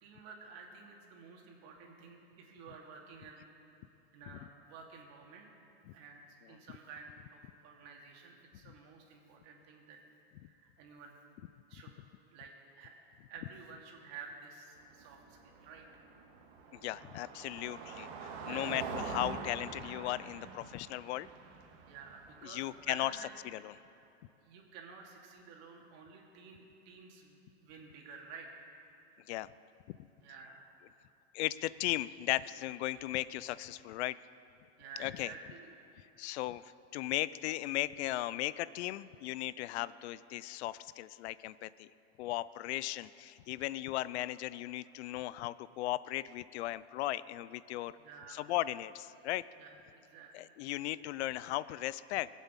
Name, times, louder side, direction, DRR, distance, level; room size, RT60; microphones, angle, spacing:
voice 1, 0.0-3.4 4.1-5.5 5.9-6.2 6.5-10.0 10.4-11.2 11.7-12.0 12.3-12.5 12.8-12.9 13.3-15.9 18.4-18.8 21.9-23.3 24.4-28.6 30.2-30.7 32.9-33.1 34.8-35.7 48.0-48.5 49.6-50.5, right 5 dB, 50° right, 0 dB, 2.6 m, -52 dB
Car passing by, 14.8-23.0, right 5 dB, 70° right, 1.9 m, -45 dB
voice 2, 16.7-21.3 22.4-23.1 23.5-23.7 29.3-29.5 31.3-34.2 35.0-35.3 36.2-36.6 36.9-41.9 42.2-47.9 48.3-49.4 50.3-52.3, left 16 dB, 75° left, 18 dB, 0.5 m, -37 dB
19.5 x 8.3 x 7.3 m, 2.8 s
supercardioid pair, 130°, 34 cm